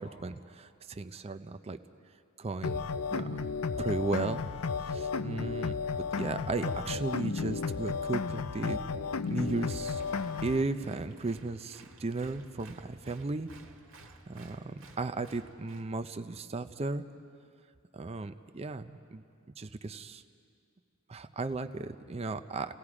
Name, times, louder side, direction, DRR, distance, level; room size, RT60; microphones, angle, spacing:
voice 1, 0.0-1.8 2.4-3.4 3.8-5.8 6.1-10.0 10.4-13.5 14.3-17.0 17.9-19.2 19.6-20.2 21.1-22.8, right 3 dB, 30° right, 9 dB, 0.5 m, -35 dB
sound 1, 2.6-10.6, left 5 dB, 90° left, 0.6 m, -33 dB
Applause, 9.2-15.9, right 2 dB, 65° right, 1.6 m, -54 dB
29.5 x 18.0 x 4.9 m, 2.3 s
head